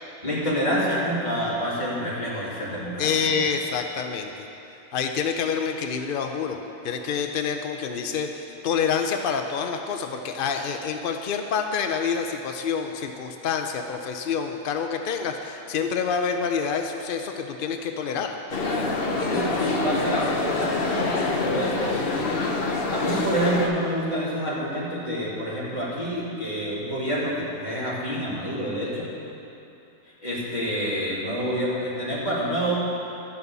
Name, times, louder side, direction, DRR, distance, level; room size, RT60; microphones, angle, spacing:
voice 1, 0.2-3.1 19.3-22.3 22.9-29.1 30.2-32.7, equal, 25° left, -8 dB, 2.7 m, -28 dB
voice 2, 3.0-4.3 4.9-6.6 6.8-18.3, left 6 dB, 80° left, 5 dB, 0.4 m, -27 dB
sound 1, 18.5-23.7, left 3 dB, 45° left, 0.9 m, -26 dB
12.0 x 5.5 x 8.0 m, 2.9 s
omnidirectional pair, 1.7 m